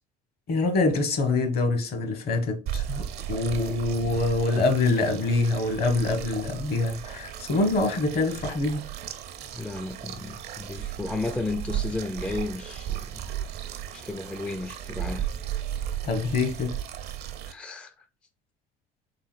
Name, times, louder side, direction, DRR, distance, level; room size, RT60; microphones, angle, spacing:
voice 1, 0.5-8.9 16.0-16.7, left 3 dB, 55° left, 1.2 m, -25 dB
sound 1, 2.7-17.5, right 10 dB, 55° right, 0.6 m, -35 dB
voice 2, 9.5-13.2 13.9-15.3 17.5-18.1, left 2 dB, 5° left, 0.4 m, -33 dB
3.9 x 3.6 x 2.4 m
hypercardioid pair, 70°, 19 cm